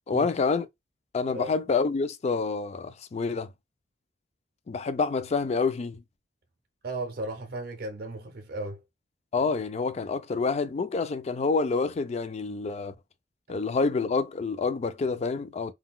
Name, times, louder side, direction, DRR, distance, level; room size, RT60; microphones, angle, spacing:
voice 1, 0.1-0.7 1.1-3.5 4.7-6.0 9.3-12.9 13.5-15.7, left 4 dB, 35° left, 0.3 m, -27 dB
voice 2, 6.8-8.8, right 2 dB, 60° right, 0.6 m, -35 dB
3.7 x 2.2 x 2.2 m
head